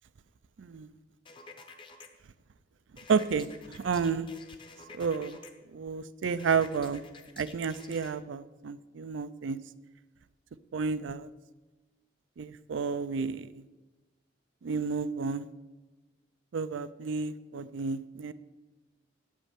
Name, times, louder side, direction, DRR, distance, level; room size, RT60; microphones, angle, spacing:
voice 1, 0.6-0.9 3.1-4.3 4.9-5.4 5.7-7.0 7.4-9.6 10.7-11.3 12.4-13.6 14.6-15.5 16.5-18.3, right 5 dB, 80° right, 13 dB, 0.4 m, -31 dB
sound 1, 1.3-2.1 3.0-5.5 6.4-8.1, left 4 dB, 25° left, 0.8 m, -50 dB
8.4 x 5.3 x 7.4 m, 1.2 s
head